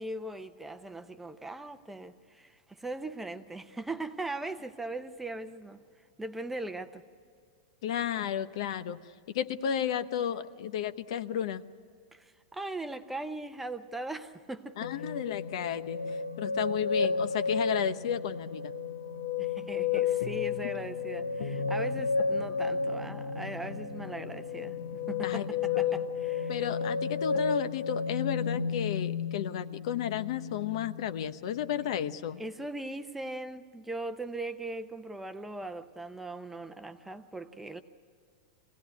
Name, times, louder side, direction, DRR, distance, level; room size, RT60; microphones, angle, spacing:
voice 1, 0.0-5.8 6.2-7.0 12.1-14.9 16.4-16.6 19.4-26.6 32.4-37.8, right 2 dB, 5° right, 8 dB, 0.7 m, -40 dB
voice 2, 7.8-9.0 9.3-11.6 14.8-16.0 16.4-18.7 25.2-25.6 25.9-26.0 26.5-32.4, left 9 dB, 65° left, 12 dB, 0.9 m, -33 dB
sound 1, 14.8-31.1 31.5-32.2, left 5 dB, 85° left, 1.1 m, -32 dB
23.5 x 17.0 x 9.6 m, 2.2 s
supercardioid pair, 155°, 3 cm